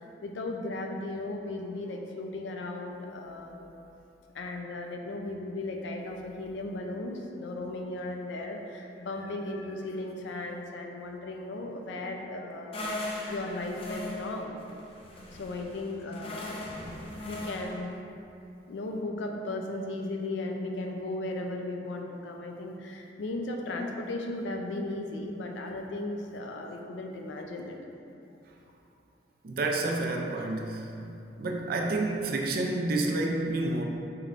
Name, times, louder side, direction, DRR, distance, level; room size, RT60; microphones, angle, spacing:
voice 1, 0.2-3.8 4.3-14.6 15.3-16.5 17.2-17.9 18.7-27.8 29.9-30.0, left 2 dB, 90° left, 2 dB, 0.4 m, -36 dB
sound 1, 12.7-17.9, left 1 dB, 30° left, 0.5 m, -39 dB
voice 2, 29.4-30.9 31.4-33.8, right 2 dB, 55° right, 0 dB, 0.4 m, -29 dB
4.5 x 3.1 x 2.5 m, 2.7 s
head